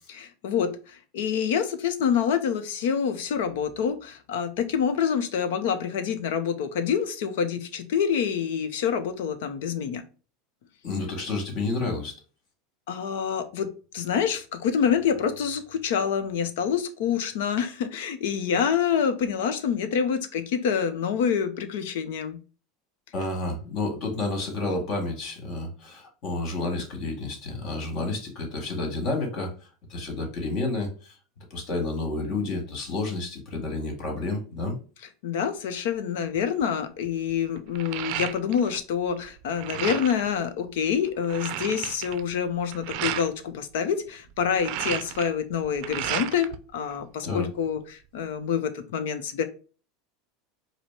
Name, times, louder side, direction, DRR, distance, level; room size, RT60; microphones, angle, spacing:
voice 1, 0.1-10.0 12.9-22.4 35.2-49.4, left 7 dB, 70° left, 9 dB, 0.7 m, -27 dB
voice 2, 10.8-12.2 23.1-31.2 31.5-34.8 47.2-47.5, left 2 dB, 55° left, 3 dB, 1.8 m, -30 dB
sound 1, 36.3-36.6 37.0-38.8 39.1-40.3 40.8-40.9 41.1-43.3 44.3-46.6 46.9-47.8, right 12 dB, 60° right, 0.5 m, -33 dB
5.0 x 2.1 x 4.7 m, 0.36 s
hypercardioid pair, 85°, 0 cm